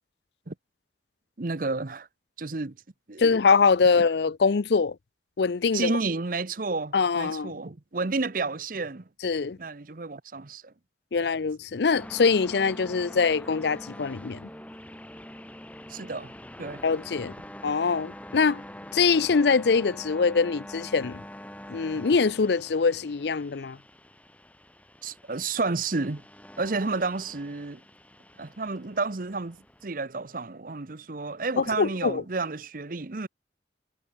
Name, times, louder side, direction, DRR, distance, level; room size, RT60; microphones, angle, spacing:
voice 1, 1.4-2.1 2.4-2.8 3.1-3.3 5.7-9.1 9.6-10.7 11.2-11.3 15.9-16.3 16.6-16.8 25.0-26.2 26.6-27.8 28.4-33.3, right 3 dB, 50° right, 0.9 m, -31 dB
voice 2, 3.2-5.0 5.4-5.9 6.9-7.5 9.2-9.6 11.1-14.5 16.8-17.3 17.6-18.6 18.9-21.2 21.7-23.8 31.6-32.2, left 5 dB, 65° left, 0.5 m, -23 dB
sound 1, 11.9-29.8, left 1 dB, 10° left, 4.7 m, -45 dB
head